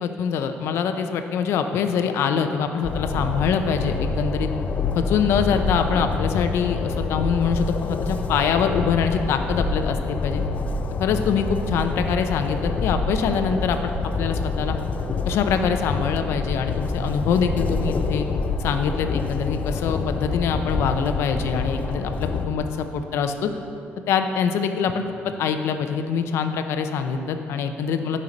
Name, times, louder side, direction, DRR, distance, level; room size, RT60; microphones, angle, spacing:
voice 1, 0.0-4.5 5.0-10.4 11.0-13.9 14.2-14.8 15.3-18.3 18.6-23.5 24.1-28.2, left 6 dB, 75° left, 7 dB, 0.7 m, -24 dB
Train, 2.8-22.5, left 4 dB, 35° left, 0.5 m, -27 dB
12.5 x 5.5 x 5.3 m, 2.6 s
cardioid pair, 155°, 4 cm